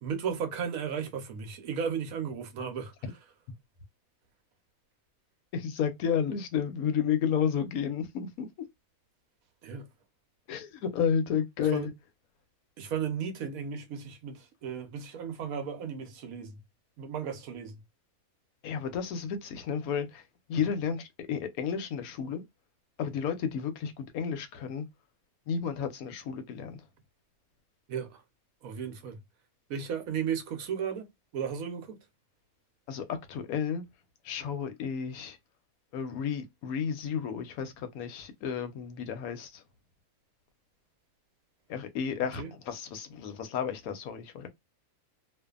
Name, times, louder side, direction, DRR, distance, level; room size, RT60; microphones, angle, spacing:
voice 1, 0.0-2.9 9.6-9.9 11.7-11.9 12.8-16.6 17.0-17.8 27.9-28.2 28.6-29.2 29.7-31.1 31.3-32.0 42.4-42.5, right 7 dB, 75° right, 1.1 m, -35 dB
voice 2, 5.5-8.5 10.5-11.9 18.6-20.2 20.5-22.4 23.0-24.9 25.5-26.8 32.9-33.8 34.2-35.4 35.9-39.6 41.7-44.5, left 7 dB, 85° left, 1.1 m, -32 dB
2.6 x 2.4 x 2.3 m
omnidirectional pair, 1.5 m